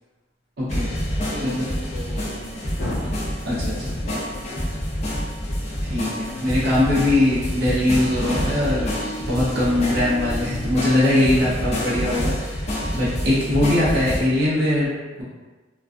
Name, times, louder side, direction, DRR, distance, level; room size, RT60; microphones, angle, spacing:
voice 1, 0.6-0.9 1.4-1.6 3.4-3.9 5.8-8.9 9.2-14.9 15.2-15.3, left 1 dB, 60° right, -8 dB, 0.7 m, -21 dB
sound 1, 0.7-14.2, equal, 35° left, 0.5 m, -28 dB
voice 2, 1.3-3.3 3.7-5.1 11.3-11.9, left 1 dB, 70° left, -10 dB, 0.8 m, -35 dB
Human voice, 6.2-11.2, left 3 dB, 35° right, 1.0 m, -38 dB
2.4 x 2.2 x 2.3 m, 1.3 s
head